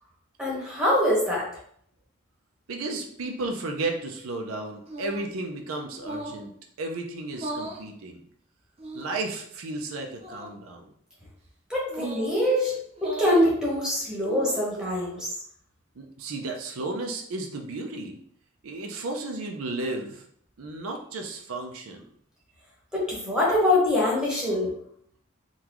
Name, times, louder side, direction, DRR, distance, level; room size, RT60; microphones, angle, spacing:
voice 1, 0.4-1.4 11.7-12.7 13.0-15.3 22.9-24.7, left 1 dB, 5° right, -5 dB, 1.1 m, -24 dB
voice 2, 2.7-6.5 6.8-8.2 8.9-10.9 16.0-18.2 18.6-20.2 20.6-22.0, right 2 dB, 85° right, 3 dB, 0.5 m, -33 dB
sound 1, 4.9-5.4 6.0-6.5 7.3-7.8 8.8-9.3 10.2-10.5 11.9-12.3 12.9-13.5 14.1-14.7, right 1 dB, 30° right, 0.6 m, -37 dB
3.8 x 2.3 x 2.9 m, 0.65 s
head